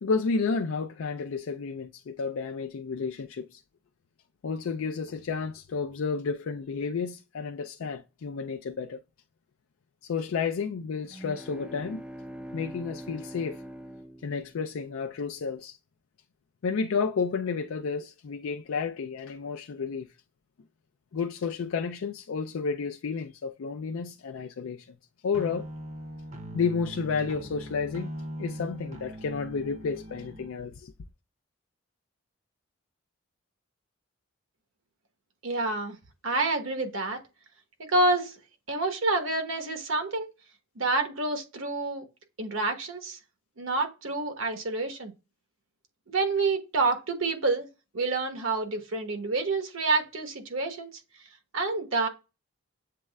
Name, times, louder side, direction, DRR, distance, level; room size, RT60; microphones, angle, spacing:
voice 1, 0.0-3.6 4.4-9.0 10.0-12.0 12.5-13.6 14.2-15.8 16.6-20.1 21.1-24.9 25.2-25.7 26.5-28.1 28.4-30.9, left 5 dB, 75° left, 0.4 m, -31 dB
sound 1, 11.0-15.1, right 1 dB, 5° right, 0.3 m, -43 dB
sound 2, 25.3-30.5, equal, 35° right, 0.7 m, -40 dB
voice 2, 35.4-36.0 36.2-37.2 37.8-38.4 38.7-40.3 40.8-42.1 42.4-43.2 43.6-45.1 46.1-47.7 47.9-50.9 51.5-52.1, right 3 dB, 70° right, 1.1 m, -28 dB
7.5 x 3.2 x 2.2 m
head